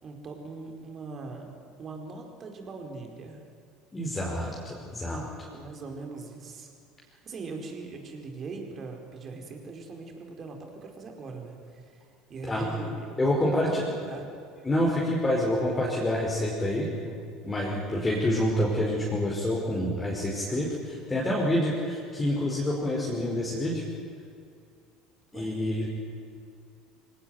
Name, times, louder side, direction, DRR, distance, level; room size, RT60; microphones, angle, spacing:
voice 1, 0.0-3.4 5.5-6.7 7.0-14.3 25.3-25.5, right 3 dB, 35° right, 3 dB, 4.8 m, -41 dB
voice 2, 3.9-5.5 12.4-12.6 13.2-13.8 14.6-17.1 17.4-23.8 25.3-25.9, left 1 dB, 15° left, -3 dB, 5.0 m, -27 dB
25.0 x 18.0 x 9.7 m, 2.4 s
figure-of-eight pair, 65°, 0 cm